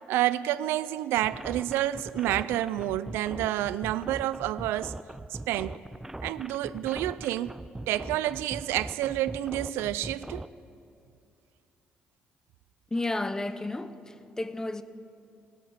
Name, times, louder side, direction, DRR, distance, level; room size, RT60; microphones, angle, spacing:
voice 1, 0.1-5.0 5.5-5.8 6.2-7.6 7.9-10.4, right 14 dB, 90° right, 0.3 m, -29 dB
sound 1, 1.2-10.5, right 2 dB, 10° right, 0.4 m, -40 dB
voice 2, 12.9-14.8, left 2 dB, 15° left, 0.8 m, -32 dB
19.5 x 8.3 x 7.2 m
cardioid pair, 75°, 4 cm